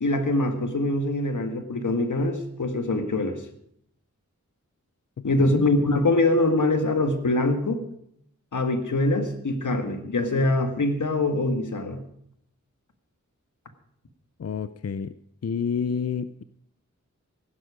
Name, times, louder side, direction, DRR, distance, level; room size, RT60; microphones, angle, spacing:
voice 1, 0.0-3.4 5.2-7.8 8.5-12.0, left 2 dB, 85° left, 7 dB, 1.8 m, -24 dB
voice 2, 5.2-5.6 14.4-15.1 15.4-16.4, left 6 dB, 55° left, 13 dB, 0.6 m, -29 dB
16.0 x 12.0 x 5.0 m, 0.71 s
wide cardioid pair, 65°, 30 cm